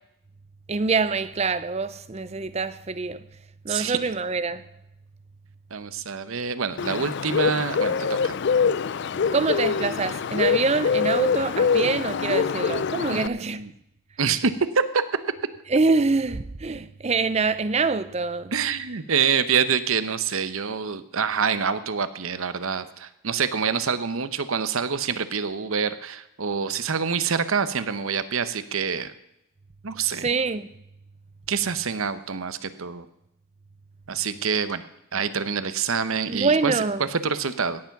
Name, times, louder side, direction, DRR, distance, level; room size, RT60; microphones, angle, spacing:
voice 1, 0.7-3.2 3.6-4.7 9.3-13.6 15.7-18.5 30.1-30.7 36.3-37.0, right 4 dB, 30° right, 0.5 m, -25 dB
voice 2, 3.7-4.0 5.7-8.4 13.1-13.7 14.2-15.0 18.5-29.1 29.8-30.3 31.5-33.1 34.1-34.8 35.1-36.8 37.1-37.8, right 6 dB, 70° right, 0.8 m, -26 dB
Bird, 6.8-13.3, left 6 dB, 50° left, 0.3 m, -24 dB
17.0 x 7.1 x 5.9 m
head